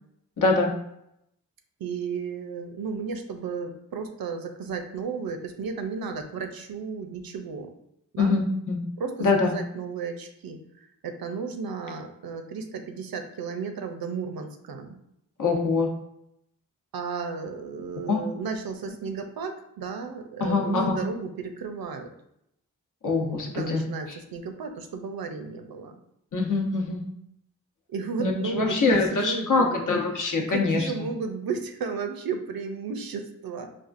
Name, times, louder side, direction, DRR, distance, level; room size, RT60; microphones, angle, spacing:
voice 1, 0.4-0.7 8.2-8.8 9.2-9.5 15.4-15.9 18.1-18.2 20.4-21.0 23.0-23.8 26.3-27.0 28.2-31.1, left 3 dB, 60° left, 1 dB, 0.9 m, -24 dB
voice 2, 1.8-7.7 8.1-8.4 9.0-10.6 11.0-15.0 16.9-22.1 23.4-26.0 27.9-33.7, right 5 dB, 75° right, 6 dB, 0.5 m, -34 dB
4.2 x 2.4 x 2.5 m, 0.79 s
cardioid pair, 40°, 36 cm